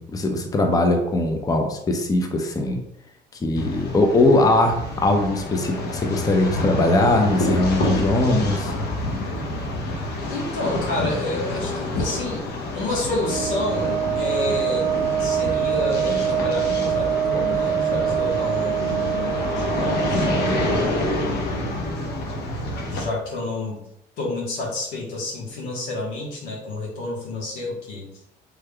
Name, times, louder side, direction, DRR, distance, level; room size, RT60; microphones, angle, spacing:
voice 1, 0.0-2.8 3.4-8.7, left 2 dB, 20° left, 4 dB, 0.5 m, -20 dB
sound 1, 3.6-23.1, left 2 dB, 55° left, 0.7 m, -27 dB
voice 2, 10.3-12.5 12.7-14.9 15.2-19.1 19.5-21.5 22.9-23.8 24.2-28.1, left 2 dB, 85° left, -3 dB, 1.2 m, -29 dB
Wind instrument woodwind instrument, 13.2-21.0, right 9 dB, 55° right, 0.6 m, -25 dB
3.4 x 3.2 x 2.2 m, 0.76 s
supercardioid pair, 90°, 20 cm